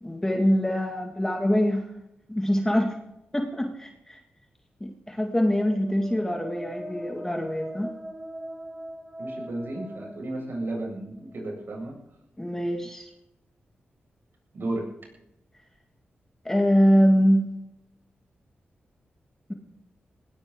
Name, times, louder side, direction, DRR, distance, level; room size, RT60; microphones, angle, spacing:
voice 1, 0.0-1.9 2.3-3.0 3.3-4.2 4.8-7.9 12.4-13.1 16.5-17.6, equal, 10° left, 2 dB, 2.1 m, -24 dB
sound 1, 5.6-11.4, right 1 dB, 20° right, 4.7 m, -41 dB
voice 2, 9.2-12.0 14.5-14.8, right 2 dB, 65° right, -1 dB, 7.8 m, -33 dB
20.0 x 17.5 x 3.9 m, 0.85 s
wide cardioid pair, 95°, 4 cm